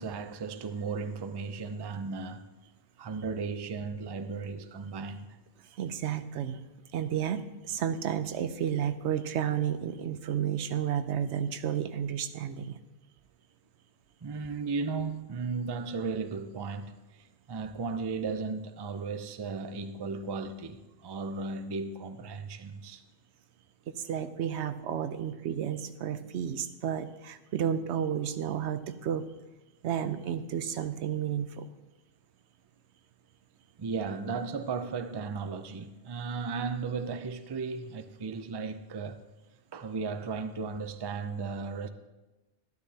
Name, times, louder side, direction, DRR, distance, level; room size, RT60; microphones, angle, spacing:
voice 1, 0.0-2.4 3.0-5.3 14.2-23.0 33.8-39.2 39.7-41.9, right 4 dB, 35° right, 0.4 m, -35 dB
voice 2, 5.7-6.6 6.9-12.8 23.9-29.3 29.8-31.7, right 9 dB, 90° right, 0.9 m, -32 dB
12.0 x 12.0 x 2.8 m
omnidirectional pair, 1.1 m